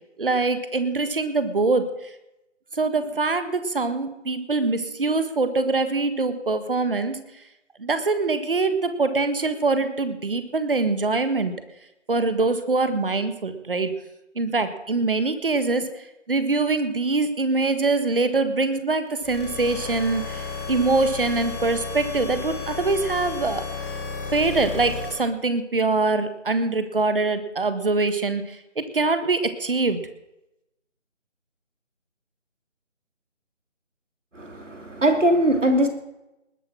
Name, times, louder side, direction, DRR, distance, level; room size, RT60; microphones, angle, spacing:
voice 1, 0.2-1.9 2.7-7.2 7.8-11.5 12.1-13.9 14.3-23.6 24.3-30.0, right 3 dB, 50° right, 10 dB, 1.6 m, -24 dB
sound 1, 19.1-25.1, left 5 dB, 10° left, 2.2 m, -33 dB
voice 2, 34.4-35.9, right 1 dB, 90° right, 6 dB, 3.0 m, -21 dB
20.0 x 8.0 x 6.1 m, 0.92 s
figure-of-eight pair, 165°, 36 cm